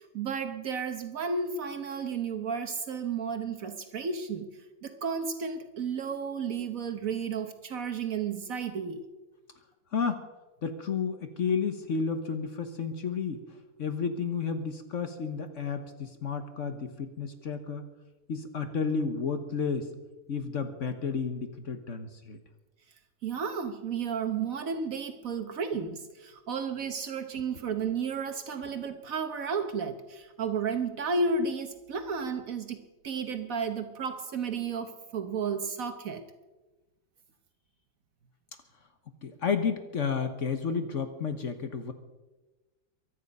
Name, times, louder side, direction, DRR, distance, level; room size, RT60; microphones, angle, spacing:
voice 1, 0.0-4.5 4.8-9.0 23.2-36.2, right 5 dB, 70° right, 7 dB, 1.5 m, -33 dB
voice 2, 10.6-13.4 13.8-17.8 18.3-19.9 20.3-22.4 39.2-41.9, left 5 dB, 60° left, 8 dB, 1.3 m, -31 dB
23.0 x 9.7 x 5.4 m, 1.1 s
omnidirectional pair, 1.5 m